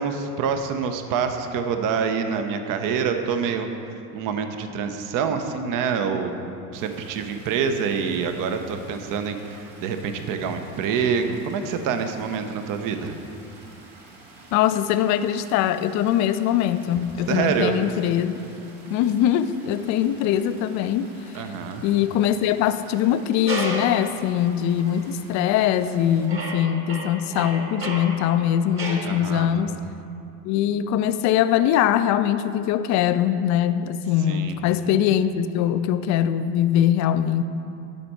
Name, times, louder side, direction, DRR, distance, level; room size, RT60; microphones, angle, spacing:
voice 1, 0.0-3.7 4.1-13.2 17.3-17.8 21.3-21.9 29.0-29.6 34.3-34.6, right 6 dB, 45° right, 7 dB, 0.8 m, -26 dB
sound 1, 6.7-26.3, right 2 dB, 65° right, 1.6 m, -49 dB
voice 2, 14.5-18.4 18.9-21.1 21.3-21.4 21.8-29.7 30.5-37.4, left 10 dB, 40° left, 12 dB, 0.4 m, -22 dB
sound 2, 23.5-24.1 24.8-24.9 25.6-25.9 26.3-29.1, right 2 dB, 30° right, 1.4 m, -32 dB
11.5 x 4.3 x 4.5 m, 2.6 s
hypercardioid pair, 70°, 45 cm